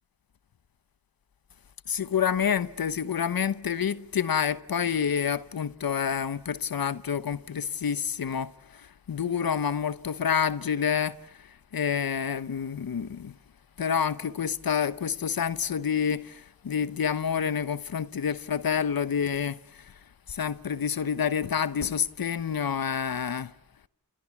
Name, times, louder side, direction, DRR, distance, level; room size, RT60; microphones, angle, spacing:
voice 1, 1.9-13.3 13.8-19.6 20.3-23.5, left 7 dB, 85° left, 1.0 m, -28 dB
29.0 x 28.5 x 7.2 m
wide cardioid pair, 65°, 34 cm